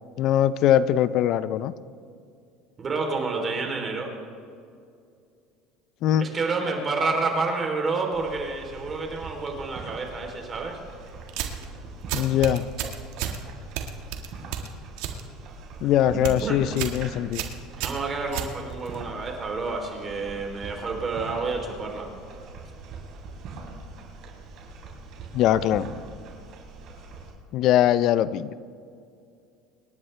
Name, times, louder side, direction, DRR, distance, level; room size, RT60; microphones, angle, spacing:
voice 1, 0.2-1.7 6.0-6.3 12.1-12.6 15.8-17.4 25.3-25.9 27.5-28.5, left 11 dB, 55° left, 16 dB, 0.6 m, -21 dB
voice 2, 2.8-4.1 6.2-10.8 15.8-15.9 16.4-16.6 17.8-22.1, right 3 dB, 30° right, 2 dB, 3.3 m, -29 dB
sound 1, 8.1-27.3, right 3 dB, 50° right, 3.8 m, -42 dB
sound 2, 11.3-11.7 12.1-13.4 13.8-15.2 15.5-15.8 16.1-16.4 16.8-17.0 17.3-19.0, right 10 dB, 75° right, 1.6 m, -31 dB
26.5 x 11.0 x 3.3 m, 2.4 s
supercardioid pair, 120°, 0 cm